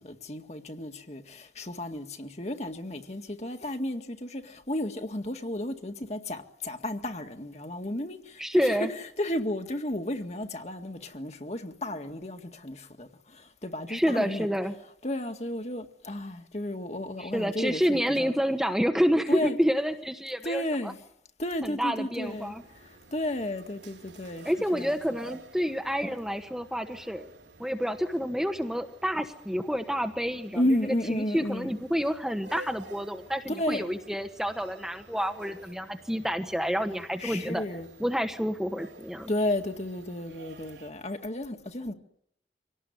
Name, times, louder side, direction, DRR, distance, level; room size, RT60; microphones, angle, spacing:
voice 1, 0.0-8.9 9.2-14.5 15.0-18.3 19.3-19.6 20.4-21.0 21.4-22.5 23.1-24.9 25.2-25.3 30.5-31.7 33.5-33.9 37.2-37.9 39.3-41.9, left 1 dB, 35° left, 2.0 m, -33 dB
voice 2, 8.4-8.9 13.9-14.7 17.2-20.9 21.6-22.6 24.4-27.3 27.6-30.8 31.1-37.6 38.0-39.3, equal, 5° right, 1.3 m, -28 dB
sound 1, 22.2-40.9, right 2 dB, 80° right, 4.2 m, -52 dB
26.0 x 18.5 x 9.6 m
head